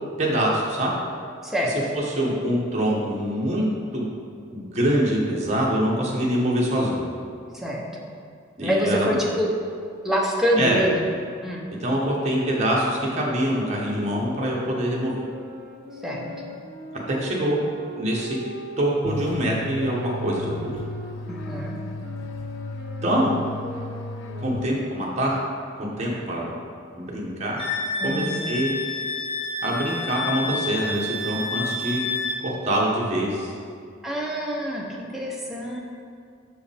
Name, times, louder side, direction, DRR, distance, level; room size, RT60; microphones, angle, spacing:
voice 1, 0.2-0.9 1.6-3.6 3.9-4.1 4.5-7.0 8.6-9.1 10.6-10.8 11.8-15.2 17.1-17.6 17.9-18.4 18.8-20.8 23.0-23.3 24.4-25.4 25.8-26.5 26.9-27.7 28.0-28.7 29.6-32.0 32.4-33.5, equal, 35° right, -4 dB, 1.1 m, -24 dB
voice 2, 1.4-1.8 7.6-7.9 8.6-9.5 10.0-11.0 11.4-11.6 16.0-16.3 21.3-21.8 28.0-28.5 34.0-35.8, equal, ahead, -3 dB, 0.7 m, -26 dB
sound 1, 13.5-19.1 19.7-25.2, right 1 dB, 50° right, 0.6 m, -40 dB
sound 2, 19.0-25.2, left 2 dB, 85° left, 0.3 m, -35 dB
Wind instrument woodwind instrument, 27.6-32.4, left 3 dB, 25° left, 0.9 m, -29 dB
6.1 x 5.0 x 3.4 m, 2.3 s
head